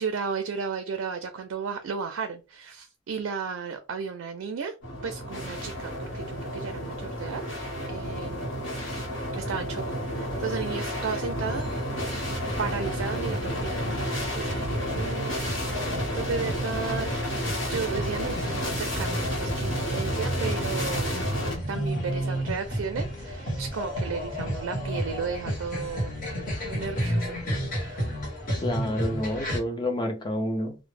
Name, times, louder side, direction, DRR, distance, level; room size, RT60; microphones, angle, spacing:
voice 1, 0.0-4.7 5.0-7.4 7.9-8.5 9.3-9.8 10.1-11.7 12.6-21.1 21.7-26.1 26.6-27.4 27.8-28.1, right 5 dB, 75° right, 0.4 m, -34 dB
sound 1, 4.8-21.5, equal, 65° left, 1.0 m, -31 dB
sound 2, 11.5-29.6, equal, 40° left, 0.9 m, -32 dB
voice 2, 28.6-30.8, left 1 dB, 20° left, 0.4 m, -29 dB
2.0 x 2.0 x 3.1 m
head